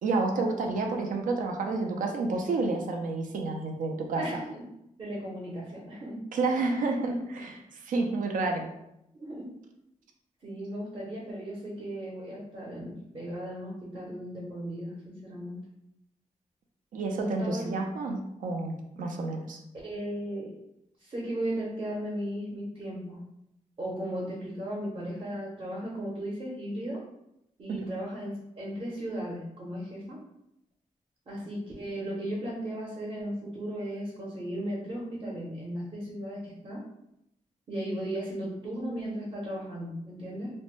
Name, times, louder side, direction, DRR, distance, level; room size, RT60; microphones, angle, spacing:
voice 1, 0.0-4.2 6.3-8.7 16.9-19.6 27.7-27.8, right 3 dB, 85° right, 3 dB, 0.4 m, -30 dB
voice 2, 4.2-4.7 5.0-6.2 9.1-9.5 10.4-15.6 17.1-17.9 19.8-20.5 21.0-23.2 23.8-27.0 27.6-30.2 31.3-36.8 37.7-40.5, right 1 dB, 40° right, -4 dB, 0.7 m, -36 dB
2.5 x 2.1 x 3.0 m, 0.81 s
wide cardioid pair, 130°, 13 cm